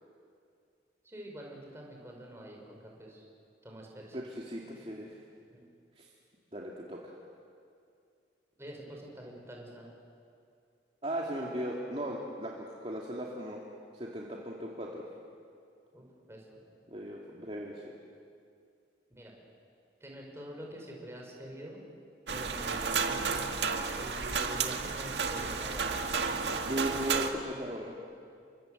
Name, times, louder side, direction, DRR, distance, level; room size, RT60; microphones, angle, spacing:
voice 1, 1.0-3.3 3.6-4.2 5.5-5.6 8.6-9.9 15.9-16.4 19.2-19.3 20.0-21.8 22.3-23.4 23.9-25.9, right 1 dB, 15° right, -1 dB, 5.5 m, -46 dB
voice 2, 4.1-5.2 6.0-6.1 6.5-7.1 11.0-13.6 13.9-15.0 16.9-17.9 26.6-27.9, right 1 dB, 35° right, -2 dB, 2.5 m, -37 dB
sound 1, 22.3-27.3, right 5 dB, 75° right, 1.8 m, -32 dB
29.5 x 25.0 x 7.9 m, 2.4 s
head